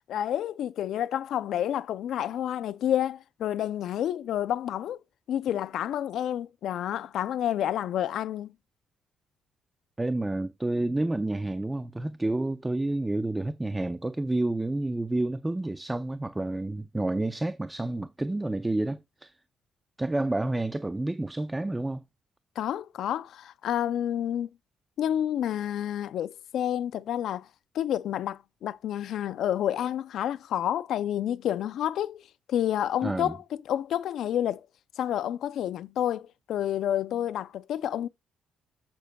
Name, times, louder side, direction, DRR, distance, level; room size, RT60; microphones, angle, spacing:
voice 1, 0.1-5.0 5.3-8.5 22.6-24.5 25.0-27.5 27.7-32.2 32.5-33.4 33.7-34.6 35.0-38.1, left 11 dB, 75° left, 0.5 m, -29 dB
voice 2, 10.0-19.3 20.0-22.0 33.0-33.3, right 2 dB, 15° right, 0.5 m, -29 dB
14.5 x 6.0 x 2.3 m
cardioid pair, 90°, 0 cm